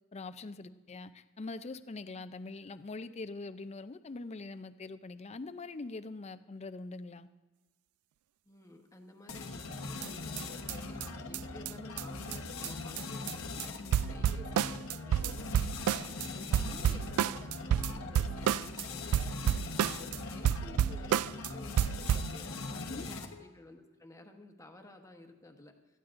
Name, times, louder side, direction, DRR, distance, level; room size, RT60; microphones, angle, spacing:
voice 1, 0.1-7.3 13.8-14.2 22.9-23.1, left 3 dB, 30° left, 11 dB, 0.5 m, -43 dB
voice 2, 8.4-25.8, left 1 dB, 15° left, 4 dB, 1.1 m, -54 dB
sound 1, 9.3-23.5, left 3 dB, 65° left, 1.1 m, -41 dB
sound 2, 10.0-10.1 10.4-10.5 10.7-10.8 11.0-11.1 11.3-11.4 11.7-11.8 12.0-12.1 12.3-12.4 12.6-12.7 13.0-13.3 13.6-13.7 13.9-16.3 16.5-18.8 19.1-20.2 20.4-21.5 21.8-22.3, right 9 dB, 85° right, 0.3 m, -30 dB
18.5 x 14.0 x 2.6 m, 1.2 s
head